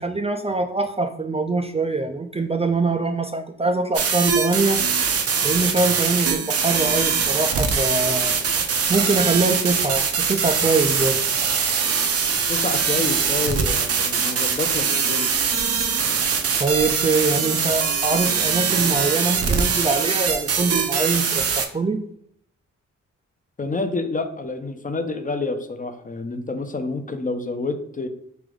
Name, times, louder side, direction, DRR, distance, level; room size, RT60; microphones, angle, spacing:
voice 1, 0.0-4.8 5.4-8.4 8.9-11.2 16.6-22.0, right 3 dB, 20° right, 6 dB, 0.4 m, -23 dB
sound 1, 3.9-21.7, right 6 dB, 55° right, 0.6 m, -22 dB
voice 2, 12.5-15.3 23.6-28.1, left 3 dB, 30° left, 7 dB, 0.6 m, -28 dB
3.4 x 2.9 x 3.6 m, 0.67 s
supercardioid pair, 50°, 29 cm